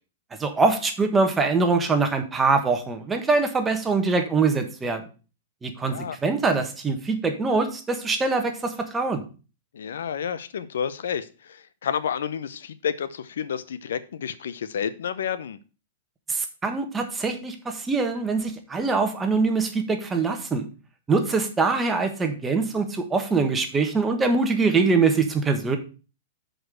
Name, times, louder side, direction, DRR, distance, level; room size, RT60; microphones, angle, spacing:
voice 1, 0.4-5.0 5.6-9.2 16.3-20.7 21.1-25.8, right 4 dB, 15° right, 5 dB, 1.3 m, -23 dB
voice 2, 5.8-6.2 9.7-15.6, left 8 dB, 80° left, 14 dB, 0.7 m, -30 dB
6.2 x 5.2 x 6.2 m, 0.34 s
hypercardioid pair, 140°, 0 cm